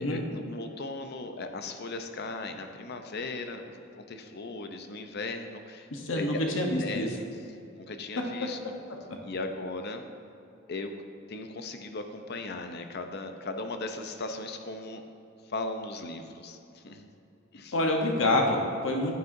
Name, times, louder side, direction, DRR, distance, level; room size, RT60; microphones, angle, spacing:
voice 1, 0.0-7.2 7.7-8.6 9.2-10.1 10.7-10.9 11.3-15.0 15.4-17.1 17.5-17.7, left 2 dB, 55° left, 6 dB, 0.6 m, -37 dB
voice 2, 5.9-7.1 17.7-19.1, left 1 dB, 80° left, 1 dB, 1.0 m, -27 dB
9.5 x 9.4 x 2.7 m, 2.6 s
head